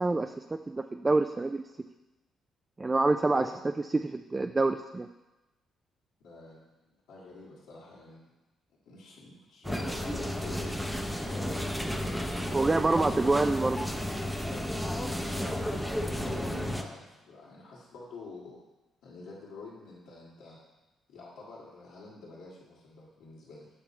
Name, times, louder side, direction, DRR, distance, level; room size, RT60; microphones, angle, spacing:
voice 1, 0.0-1.6 2.8-3.4 3.9-5.1 12.5-13.8, right 3 dB, 20° right, 7 dB, 0.3 m, -26 dB
voice 2, 3.3-3.6 6.2-8.2 8.8-12.2 15.3-18.6 19.0-20.6 21.1-23.7, left 3 dB, 85° left, -8 dB, 1.7 m, -47 dB
sound 1, 9.6-16.8, left 1 dB, ahead, 0.7 m, -32 dB
8.1 x 5.7 x 4.3 m, 1.0 s
cardioid pair, 90°, 0 cm